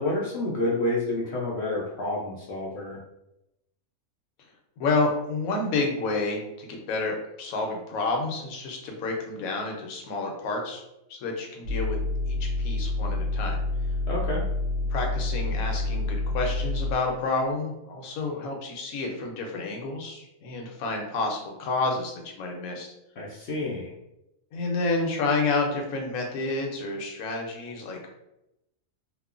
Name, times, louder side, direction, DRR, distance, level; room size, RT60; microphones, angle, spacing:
voice 1, 0.0-3.0 14.1-14.4 23.2-23.9, left 2 dB, 65° left, -4 dB, 0.7 m, -29 dB
voice 2, 4.8-10.8 11.1-12.0 12.3-13.6 14.9-22.9 24.5-28.1, left 3 dB, 80° left, 1 dB, 1.1 m, -29 dB
sound 1, 11.6-16.9, left 2 dB, 75° right, 1.0 m, -28 dB
2.9 x 2.1 x 2.4 m, 0.87 s
omnidirectional pair, 1.5 m